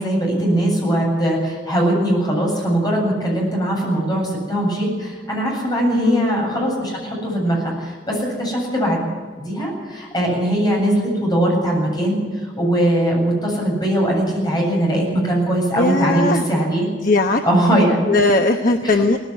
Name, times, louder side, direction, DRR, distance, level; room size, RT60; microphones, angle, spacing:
voice 1, 0.0-9.0 9.4-16.9 17.4-18.2 18.8-19.0, right 1 dB, 25° left, -1 dB, 7.9 m, -20 dB
voice 2, 6.0-6.3 15.8-16.4 17.0-17.4 18.1-19.2, left 2 dB, 50° left, 5 dB, 1.0 m, -18 dB
18.0 x 15.5 x 9.7 m, 1.5 s
head